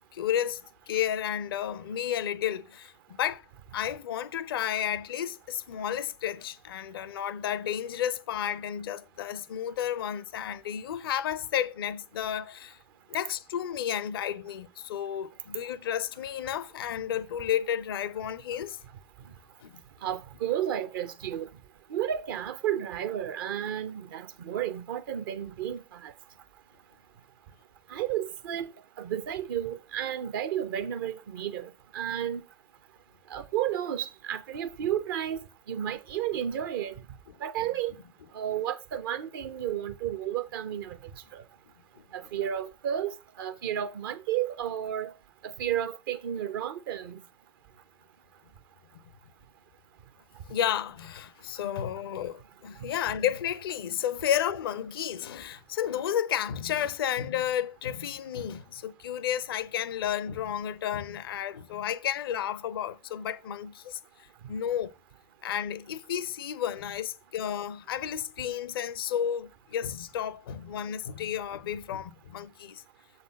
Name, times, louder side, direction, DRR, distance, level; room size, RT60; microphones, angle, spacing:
voice 1, 0.1-0.6 0.9-3.5 3.7-12.8 13.1-18.8 19.6-19.8 42.0-42.1 50.5-64.0 64.5-64.9 65.4-72.8, left 10 dB, 65° left, 0.5 m, -32 dB
voice 2, 20.0-21.5 21.9-26.1 27.9-28.7 29.0-32.4 33.3-35.4 35.7-36.9 37.4-37.9 38.3-41.0 41.3-41.4 42.1-43.1 43.4-45.1 45.4-47.2, right 10 dB, 60° right, 0.8 m, -32 dB
7.1 x 4.0 x 5.4 m
figure-of-eight pair, 75°, 13 cm